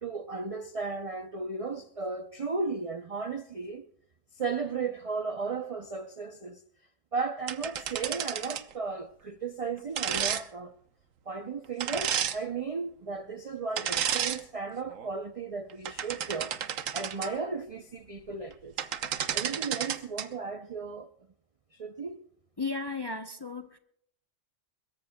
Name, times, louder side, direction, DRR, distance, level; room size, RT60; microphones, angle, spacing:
voice 1, 0.0-3.8 4.4-6.6 7.1-10.7 11.3-16.6 16.9-18.7 19.3-21.1 21.8-22.2, right 4 dB, 45° right, 0.4 m, -35 dB
sound 1, 7.5-8.7 10.0-10.4 11.8-12.4 13.8-14.4 14.9-15.1 15.7-17.3 18.5-18.6 18.8-20.3, right 9 dB, 90° right, 1.2 m, -31 dB
voice 2, 22.6-23.8, left 3 dB, 30° left, 0.5 m, -34 dB
22.5 x 21.5 x 2.2 m
omnidirectional pair, 1.3 m